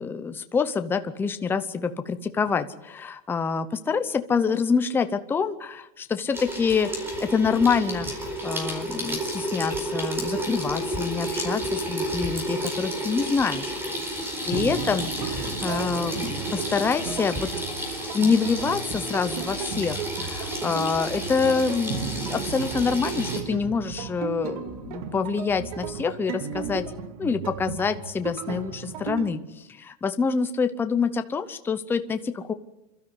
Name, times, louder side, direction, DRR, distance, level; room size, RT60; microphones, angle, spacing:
voice 1, 0.0-6.9 7.2-13.7 14.4-17.5 18.1-26.8 27.2-32.5, left 5 dB, 10° left, 9 dB, 0.8 m, -26 dB
Water tap faucet / Sink (filling or washing), 6.3-23.4, equal, 10° right, 4.5 m, -31 dB
sound 1, 14.5-29.3, right 7 dB, 65° right, 2.3 m, -35 dB
28.0 x 13.0 x 9.8 m, 0.94 s
supercardioid pair, 160°, 21 cm